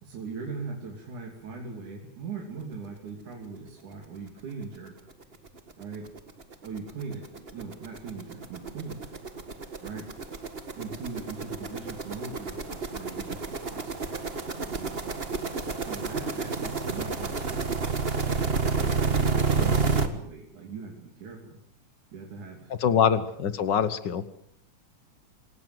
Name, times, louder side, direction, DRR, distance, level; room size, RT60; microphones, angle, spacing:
voice 1, 0.0-4.9 5.8-6.1 6.6-9.1 9.8-10.1 10.8-14.0 14.8-15.2 15.8-17.8 18.6-18.9 19.2-21.6 22.1-23.1, right 4 dB, 70° right, 0 dB, 4.4 m, -40 dB
sound 1, 4.6-4.7 5.1-5.2 5.5-20.1, right 4 dB, 30° right, 1.2 m, -30 dB
voice 2, 22.8-24.2, left 8 dB, 60° left, 13 dB, 1.1 m, -24 dB
27.5 x 17.0 x 7.9 m, 0.68 s
omnidirectional pair, 3.6 m